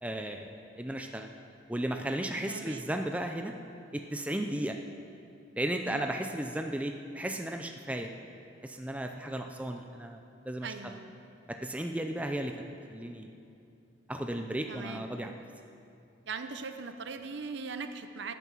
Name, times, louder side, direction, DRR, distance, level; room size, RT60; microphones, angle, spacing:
voice 1, 0.0-1.3 1.7-3.5 3.9-4.8 5.6-8.1 8.6-10.7 11.5-12.5 12.9-13.3 14.1-15.4, right 1 dB, 5° right, 4 dB, 0.5 m, -35 dB
voice 2, 2.5-2.9 5.9-6.1 10.6-11.1 14.7-15.1 16.2-18.3, right 4 dB, 60° right, 8 dB, 0.7 m, -40 dB
15.0 x 9.3 x 6.1 m, 2.6 s
head